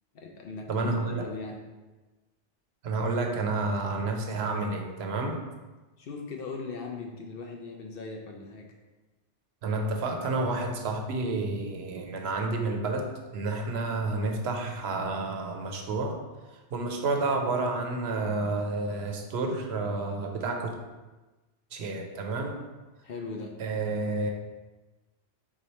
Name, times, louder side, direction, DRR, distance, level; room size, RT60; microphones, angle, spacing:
voice 1, 0.1-1.6 6.0-8.7 23.0-23.5, left 4 dB, 60° left, 1 dB, 0.7 m, -39 dB
voice 2, 0.7-1.2 2.8-5.4 9.6-13.1 13.3-16.2 16.5-20.7 21.7-22.6 23.6-24.3, right 3 dB, 70° right, 2 dB, 0.8 m, -30 dB
3.9 x 3.1 x 4.1 m, 1.2 s
omnidirectional pair, 1.2 m